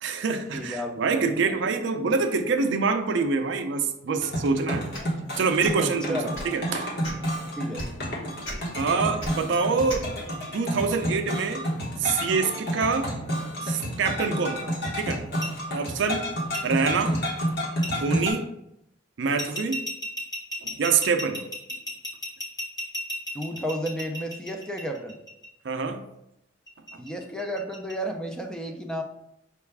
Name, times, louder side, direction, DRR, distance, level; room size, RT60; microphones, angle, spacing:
voice 1, 0.0-4.9 5.4-6.9 8.8-10.1 10.5-11.7 12.0-13.1 13.6-15.2 15.7-16.3 16.6-17.2 17.9-18.5 19.2-19.9 20.6-21.4 25.6-26.0, right 4 dB, 70° right, 6 dB, 0.4 m, -26 dB
voice 2, 0.5-1.7 5.8-6.3 7.6-7.9 23.3-25.1 27.0-29.0, equal, 5° left, 3 dB, 0.4 m, -32 dB
sound 1, 4.2-18.3, equal, 60° left, 1.1 m, -30 dB
sound 2, 4.9-5.1 5.6-5.7 6.3-6.5 7.0-7.3 7.8-7.9 8.4-8.6 9.2-9.3 9.9-10.0, equal, 85° left, 1.2 m, -35 dB
sound 3, 15.4-15.5 16.5-16.6 17.8-17.9 19.4-25.5 26.7-27.9, equal, 20° left, 1.0 m, -33 dB
5.5 x 2.3 x 3.4 m, 0.81 s
head